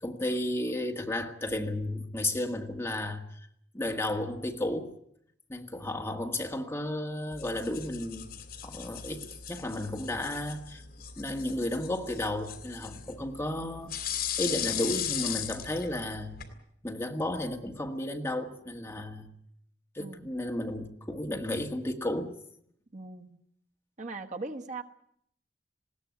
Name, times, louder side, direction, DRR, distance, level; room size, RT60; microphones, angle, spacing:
voice 1, 0.0-3.4 3.7-5.0 5.5-8.3 8.6-10.8 11.2-13.9 14.4-16.4 16.8-19.3 20.0-22.3, left 1 dB, 15° left, 1.8 m, -33 dB
sound 1, 7.3-16.5, left 9 dB, 55° left, 2.9 m, -38 dB
voice 2, 20.0-20.3 22.9-23.4 24.0-24.8, right 3 dB, 45° right, 1.3 m, -39 dB
20.5 x 17.0 x 9.4 m
head